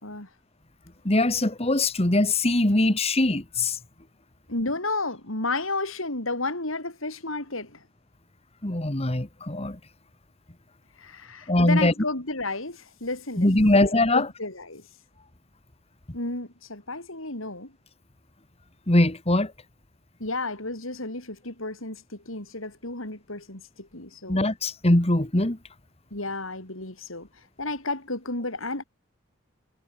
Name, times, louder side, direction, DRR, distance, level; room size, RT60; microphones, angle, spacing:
voice 1, 1.1-3.8 8.6-9.8 11.5-11.9 13.4-14.3 18.9-19.5 24.3-25.6, left 1 dB, 30° left, 1.8 m, -22 dB
voice 2, 4.5-7.8 11.0-14.8 16.1-17.7 20.2-24.4 26.1-28.8, left 2 dB, 75° left, 6.6 m, -32 dB
head